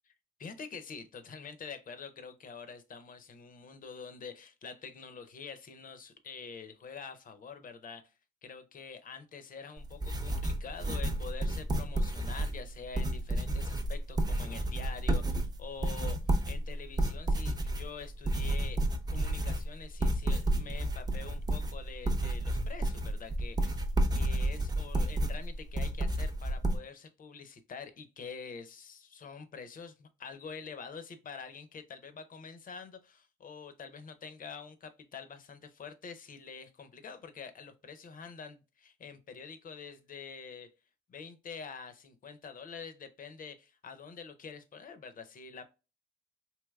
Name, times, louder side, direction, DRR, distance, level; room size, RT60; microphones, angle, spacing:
voice 1, 0.4-8.1 8.4-18.8 19.1-23.8 24.1-40.7 41.1-45.7, left 5 dB, 45° left, 0.6 m, -46 dB
sound 1, 9.8-26.8, right 1 dB, 20° right, 0.6 m, -31 dB
3.3 x 2.8 x 2.2 m
cardioid pair, 90°, 20 cm